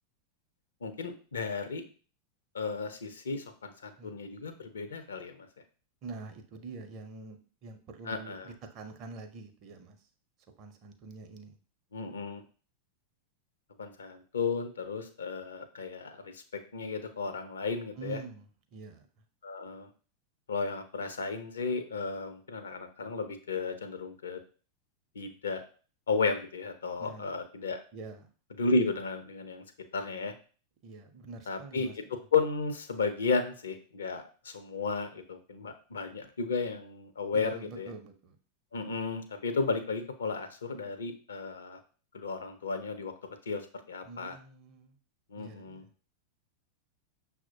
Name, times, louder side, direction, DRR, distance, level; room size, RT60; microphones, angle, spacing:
voice 1, 0.8-1.8 2.5-5.5 8.1-8.5 11.9-12.4 13.8-16.4 16.7-18.2 19.4-19.9 20.5-24.4 25.2-25.6 26.1-27.8 28.6-29.6 29.9-30.3 31.5-37.9 38.7-41.8 42.1-43.1 43.5-44.4 45.3-45.8, left 4 dB, 70° left, 8 dB, 0.5 m, -33 dB
voice 2, 6.0-10.0 10.6-11.6 18.0-18.4 18.7-19.0 27.0-27.3 27.9-28.3 30.8-31.9 37.3-38.4 44.0-45.0 45.4-45.9, right 3 dB, 40° right, 6 dB, 0.6 m, -45 dB
5.9 x 2.1 x 2.7 m, 0.39 s
figure-of-eight pair, 90°, 0 cm